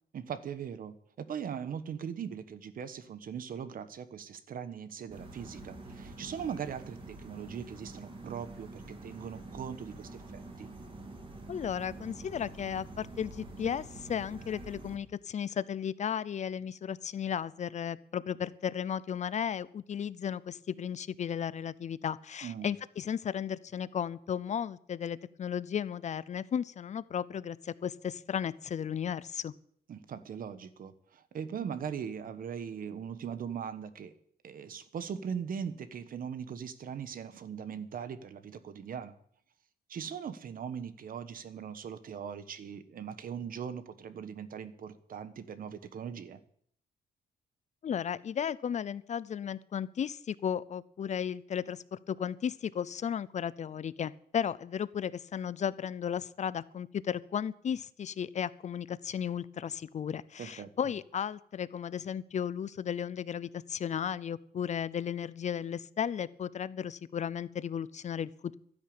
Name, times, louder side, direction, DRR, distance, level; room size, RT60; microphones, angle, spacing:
voice 1, 0.1-10.7 22.4-22.7 29.9-34.1 34.4-39.1 39.9-46.4 60.4-60.7, right 7 dB, 55° right, 12 dB, 1.2 m, -40 dB
sound 1, 5.1-15.0, right 2 dB, 30° right, 2.5 m, -46 dB
voice 2, 11.5-29.5 47.8-68.6, left 8 dB, 40° left, 19 dB, 0.6 m, -35 dB
12.5 x 10.5 x 8.8 m, 0.65 s
cardioid pair, 135°, 18 cm